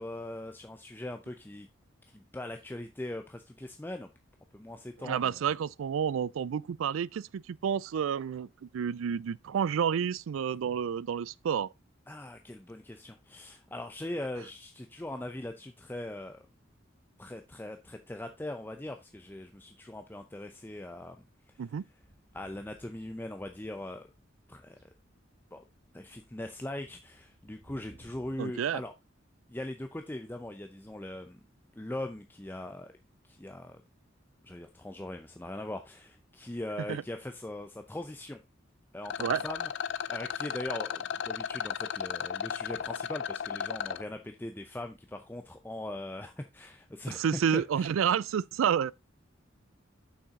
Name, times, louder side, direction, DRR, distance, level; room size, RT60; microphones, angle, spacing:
voice 1, 0.0-1.7 2.1-4.1 4.5-5.4 12.1-16.4 17.2-21.2 22.3-24.1 24.5-24.8 25.5-25.6 25.9-28.9 29.5-31.4 31.7-32.9 33.3-33.8 34.4-38.4 38.9-47.2 47.5-47.9, left 1 dB, 10° left, 0.6 m, -40 dB
voice 2, 5.0-11.7 21.6-21.8 28.4-28.8 36.9-37.0 39.2-39.4 47.1-48.9, right 8 dB, 85° right, 0.3 m, -30 dB
sound 1, 22.0-24.3 24.6-28.4, right 1 dB, 35° right, 3.4 m, -60 dB
Rattle, 39.0-44.0, left 8 dB, 60° left, 0.4 m, -35 dB
7.0 x 5.9 x 3.7 m
head